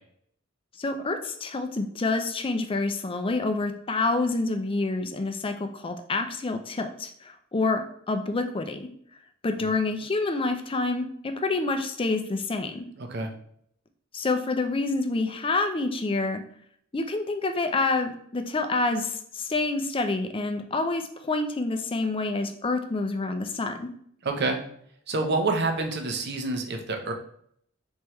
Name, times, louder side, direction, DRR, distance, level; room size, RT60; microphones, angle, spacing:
voice 1, 0.8-8.9 9.4-12.9 14.1-16.4 16.9-23.9, left 3 dB, 25° left, 6 dB, 0.5 m, -27 dB
voice 2, 13.0-13.3 24.2-24.6 25.1-27.1, right 3 dB, 55° right, 4 dB, 0.7 m, -27 dB
4.4 x 3.5 x 3.0 m, 0.65 s
head